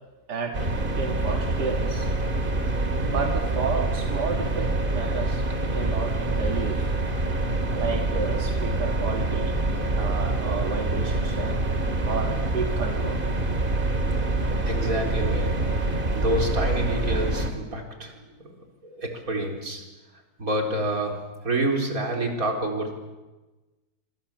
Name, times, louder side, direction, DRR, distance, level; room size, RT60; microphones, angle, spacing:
sound 1, 0.5-17.5, right 2 dB, 30° right, 2.3 m, -26 dB
voice 1, 1.0-2.1 3.0-6.9 7.7-9.6 10.0-11.7 12.1-13.2, right 4 dB, 85° right, 3 dB, 2.3 m, -31 dB
voice 2, 14.7-15.8 16.1-22.9, right 1 dB, 55° right, 2 dB, 4.5 m, -28 dB
26.0 x 26.0 x 7.3 m, 1.2 s
omnidirectional pair, 1.8 m